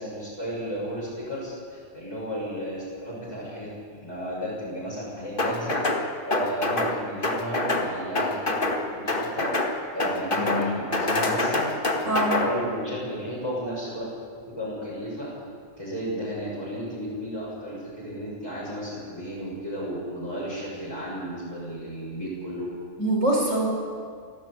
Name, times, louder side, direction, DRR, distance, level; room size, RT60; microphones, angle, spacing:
voice 1, 0.0-5.8 6.3-9.5 9.9-11.6 12.0-14.0 14.5-15.3 15.8-22.7, equal, 20° left, -9 dB, 6.7 m, -33 dB
sound 1, 5.4-6.0 6.3-6.9 7.2-7.9 8.1-8.8 9.1-9.7 10.0-10.6 10.9-12.5, left 2 dB, 45° left, 2.1 m, -25 dB
voice 2, 10.4-10.8 12.0-12.5 23.0-23.7, right 1 dB, 80° right, -1 dB, 5.4 m, -24 dB
29.5 x 12.0 x 8.4 m, 2.2 s
omnidirectional pair, 1.3 m